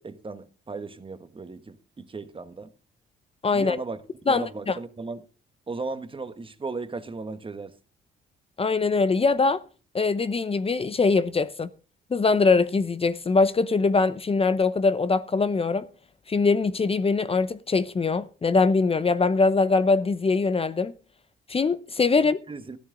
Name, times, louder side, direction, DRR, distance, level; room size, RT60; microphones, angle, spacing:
voice 1, 0.0-2.7 3.5-4.0 4.2-5.2 5.7-7.7 22.2-22.8, right 3 dB, 25° right, 1.5 m, -36 dB
voice 2, 3.4-3.8 4.3-4.8 8.6-9.6 9.9-11.7 12.1-15.9 16.3-20.9 21.5-22.4, left 4 dB, 30° left, 0.8 m, -22 dB
14.0 x 13.0 x 3.9 m
cardioid pair, 90°, 20 cm